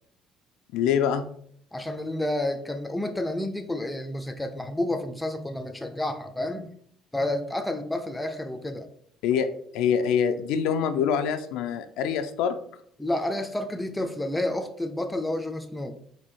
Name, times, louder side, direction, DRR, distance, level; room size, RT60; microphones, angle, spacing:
voice 1, 0.7-1.3 9.2-9.5 9.7-12.6, left 7 dB, 80° left, 9 dB, 0.4 m, -25 dB
voice 2, 1.7-6.7 7.1-8.9 13.0-16.0, left 1 dB, 5° left, 6 dB, 0.4 m, -30 dB
4.4 x 2.7 x 4.2 m, 0.64 s
cardioid pair, 160°, 0 cm